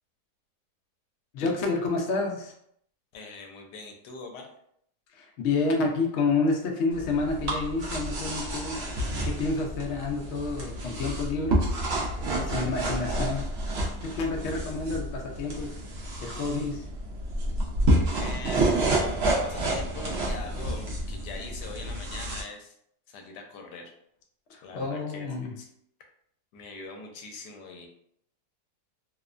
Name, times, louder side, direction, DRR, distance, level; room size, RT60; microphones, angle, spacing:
voice 1, 1.3-2.5 5.1-8.9 9.2-11.6 12.3-13.5 14.0-15.8 16.2-16.9 24.5-25.5, left 3 dB, 70° left, 1 dB, 0.6 m, -29 dB
voice 2, 3.1-4.5 18.2-22.8 23.1-23.9 24.6-25.7 26.5-27.9, left 4 dB, 85° left, 3 dB, 1.2 m, -42 dB
sound 1, 6.9-22.4, right 1 dB, 70° right, 0.6 m, -29 dB
2.9 x 2.1 x 2.4 m, 0.70 s
omnidirectional pair, 1.7 m